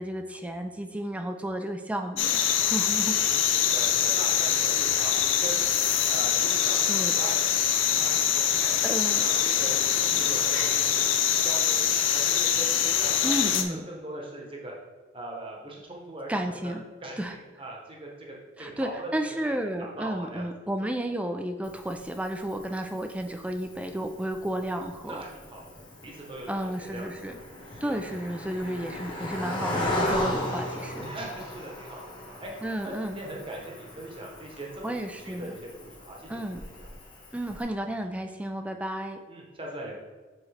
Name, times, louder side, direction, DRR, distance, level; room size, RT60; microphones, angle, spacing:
voice 1, 0.0-3.1 6.9-7.1 8.8-9.2 13.2-13.9 16.3-16.8 17.2-17.4 18.6-25.2 26.5-27.4 27.8-31.1 32.6-33.2 34.8-35.6 36.3-36.6 37.3-39.2, right 1 dB, 5° right, 6 dB, 0.3 m, -32 dB
sound 1, 2.2-13.6, left 9 dB, 70° left, 0.5 m, -24 dB
voice 2, 3.2-5.1 5.4-5.6 6.1-7.6 7.8-8.7 9.2-9.8 10.2-11.0 11.4-14.7 15.1-16.7 17.0-18.1 18.6-19.1 19.4-19.5 19.8-20.5 20.8-20.9 25.1-27.4 27.7-28.1 31.0-32.5 32.8-36.9 39.3-39.9, right 1 dB, 25° right, -2 dB, 1.0 m, -41 dB
Cricket, 21.6-37.6, left 1 dB, 25° left, 1.2 m, -37 dB
6.9 x 4.2 x 3.3 m, 1.3 s
head